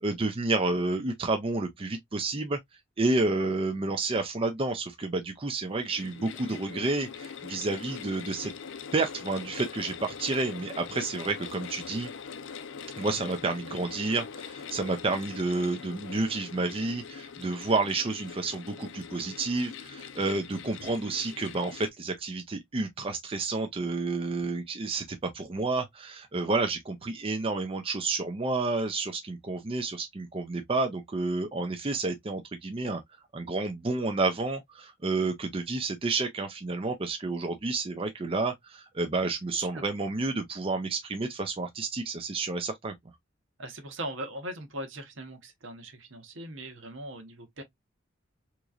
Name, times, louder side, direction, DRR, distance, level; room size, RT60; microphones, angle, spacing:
voice 1, 0.0-2.6 3.0-8.5 8.9-12.1 13.0-25.0 25.3-33.0 33.3-42.9, right 3 dB, 30° right, 0.5 m, -30 dB
sound 1, 5.7-21.9, left 6 dB, 65° left, 0.4 m, -42 dB
voice 2, 39.5-39.8 43.6-47.6, right 1 dB, 70° right, 1.1 m, -40 dB
3.7 x 3.0 x 2.3 m
head